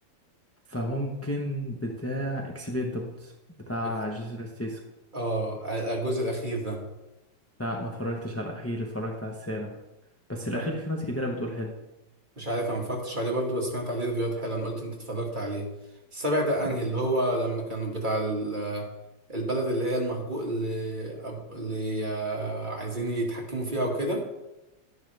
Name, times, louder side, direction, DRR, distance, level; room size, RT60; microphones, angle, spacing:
voice 1, 0.7-3.3 3.6-4.8 7.6-9.8 10.3-11.7, equal, 15° left, 0 dB, 0.6 m, -32 dB
voice 2, 5.1-6.8 10.5-10.7 12.4-15.7 16.1-18.9 19.3-24.2, right 1 dB, 25° right, -2 dB, 2.1 m, -29 dB
12.5 x 10.5 x 3.4 m, 0.95 s
omnidirectional pair, 2.0 m